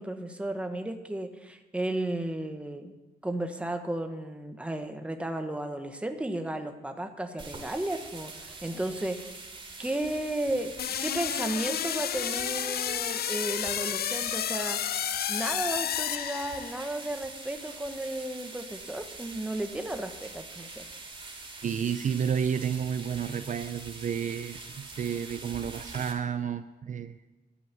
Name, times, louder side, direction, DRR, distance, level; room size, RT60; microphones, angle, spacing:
voice 1, 0.0-2.9 3.2-9.4 9.8-10.7 11.0-14.8 15.3-20.8, right 1 dB, 5° right, 6 dB, 1.1 m, -34 dB
sound 1, 7.4-26.1, right 3 dB, 30° right, 2.7 m, -44 dB
sound 2, 10.8-17.0, left 10 dB, 65° left, 0.5 m, -31 dB
voice 2, 21.6-27.2, right 7 dB, 45° right, 11 dB, 0.5 m, -31 dB
12.5 x 8.6 x 9.3 m, 1.1 s
wide cardioid pair, 165°, 18 cm